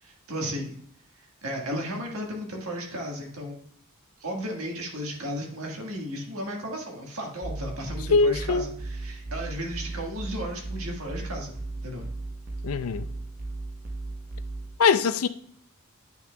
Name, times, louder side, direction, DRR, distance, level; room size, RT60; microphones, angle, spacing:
voice 1, 0.0-0.7 1.4-3.6 4.2-11.5 11.8-12.0, equal, 75° right, 1.5 m, -34 dB
sound 1, 7.4-14.8, right 2 dB, 40° right, 0.9 m, -36 dB
voice 2, 8.1-8.7 12.6-13.1 14.8-15.3, left 4 dB, 75° left, 0.5 m, -22 dB
9.4 x 5.9 x 2.2 m
head